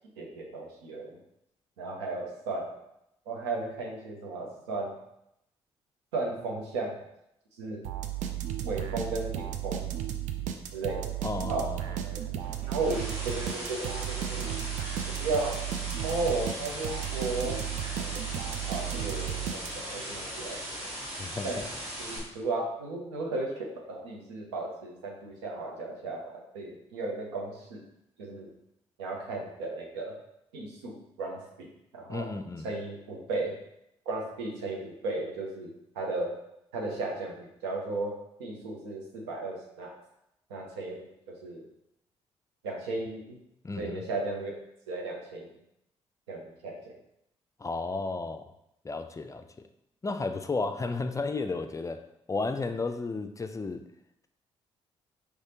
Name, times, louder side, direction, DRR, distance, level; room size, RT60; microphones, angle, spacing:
voice 1, 0.2-1.2 1.8-2.7 3.3-4.9 6.1-7.0 7.6-7.9 8.6-9.9 10.7-11.1 11.5-11.7 12.7-14.5 15.2-15.7 16.0-17.6 18.7-21.0 21.4-21.6 22.0-27.8 28.2-28.5 29.0-30.1 30.5-31.7 31.9-32.3 32.6-33.5 34.1-36.4 36.7-38.1 38.4-40.0 40.5-41.1 41.4-41.7 42.6-43.4 43.8-44.5 44.9-45.5 46.3-46.8, right 3 dB, 90° right, -1 dB, 0.8 m, -35 dB
sound 1, 7.8-20.0, right 11 dB, 70° right, 0.4 m, -34 dB
voice 2, 11.2-12.0 21.2-21.7 32.1-32.7 43.6-44.0 47.6-48.5 48.8-49.5 50.0-52.0 52.3-53.8, left 3 dB, 25° left, 8 dB, 0.4 m, -33 dB
sound 2, 12.4-22.2, equal, 45° right, 1.5 m, -39 dB
4.7 x 3.3 x 2.8 m, 0.80 s
hypercardioid pair, 45°, 14 cm